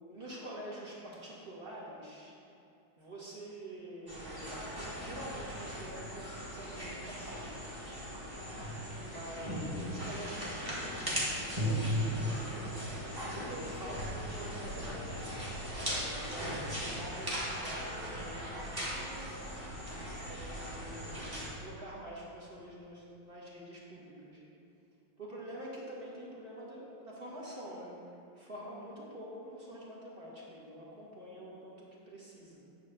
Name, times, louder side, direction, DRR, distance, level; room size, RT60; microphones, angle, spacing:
voice 1, 0.1-2.3 3.0-6.2 6.5-7.5 9.1-11.4 11.9-12.8 13.4-15.4 15.8-19.5 20.2-24.4 25.2-32.6, right 1 dB, 30° right, -6 dB, 1.2 m, -47 dB
sound 1, 4.1-21.5, equal, 15° right, 1.2 m, -38 dB
9.0 x 3.2 x 6.6 m, 2.6 s
omnidirectional pair, 2.2 m